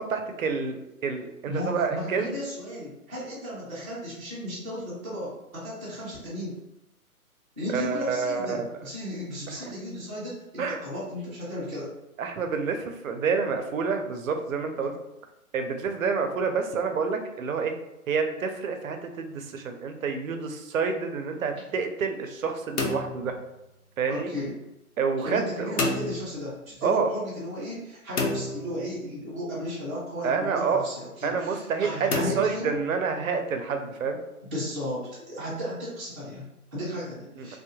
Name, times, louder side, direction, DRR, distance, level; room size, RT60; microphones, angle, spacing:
voice 1, 0.1-2.3 7.7-8.7 9.5-9.7 10.6-10.8 12.2-15.0 15.5-17.7 18.1-23.3 24.0-24.3 25.0-25.8 26.8-27.1 30.2-30.8 31.2-34.2 37.4-37.6, right 5 dB, 65° right, 6 dB, 0.5 m, -28 dB
voice 2, 1.4-6.6 7.6-11.9 24.1-24.5 25.2-32.8 34.5-37.6, left 1 dB, 10° right, -11 dB, 0.5 m, -35 dB
sound 1, 22.8-24.1 25.8-26.8 28.2-29.4 32.1-33.3, left 2 dB, 75° left, 0.7 m, -31 dB
2.6 x 2.1 x 2.9 m, 0.88 s
hypercardioid pair, 145°, 44 cm